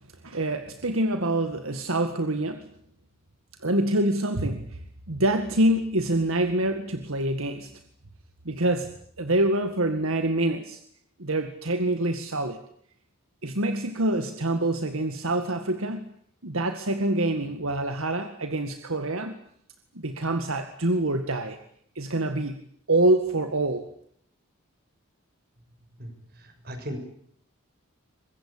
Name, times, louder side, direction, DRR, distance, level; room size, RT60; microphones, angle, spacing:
voice 1, 0.2-2.6 3.6-4.8 5.1-7.7 8.5-10.8 11.2-12.6 13.4-16.1 16.4-19.3 20.0-21.6 22.0-22.6 22.9-23.9, right 1 dB, 75° right, 7 dB, 1.9 m, -26 dB
voice 2, 26.0-27.0, equal, 45° right, 7 dB, 6.4 m, -38 dB
25.0 x 21.5 x 8.6 m, 0.65 s
head